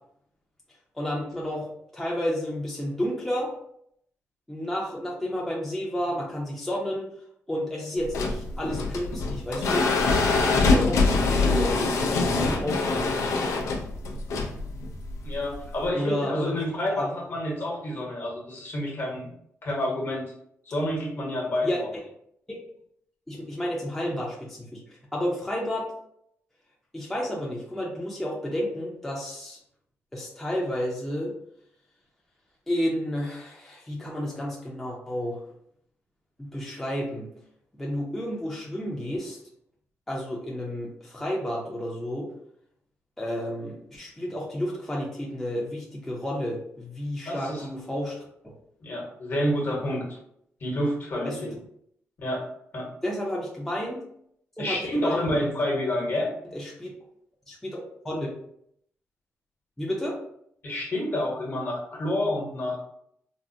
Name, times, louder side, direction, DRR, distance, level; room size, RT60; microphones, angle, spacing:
voice 1, 0.9-3.5 4.5-7.1 7.5-9.9 10.4-11.8 12.1-13.2 15.9-16.6 16.9-17.1 21.6-21.8 22.5-22.6 23.3-24.8 25.1-25.9 26.9-29.6 30.1-31.4 32.7-35.4 36.4-37.3 37.8-39.4 40.1-42.3 43.2-48.3 51.2-51.6 53.0-54.0 54.6-55.2 56.5-56.9 57.5-57.8 58.0-58.3 59.8-60.2, equal, 5° left, -4 dB, 0.5 m, -31 dB
sound 1, 8.0-15.9, left 3 dB, 90° left, 0.5 m, -24 dB
voice 2, 15.2-19.3 19.6-20.2 20.6-21.9 47.3-47.7 48.8-50.2 50.6-51.5 52.2-52.4 52.7-52.9 54.6-56.4 60.6-62.8, left 1 dB, 50° left, -2 dB, 1.1 m, -28 dB
3.6 x 2.1 x 2.6 m, 0.70 s
wide cardioid pair, 130°, 5 cm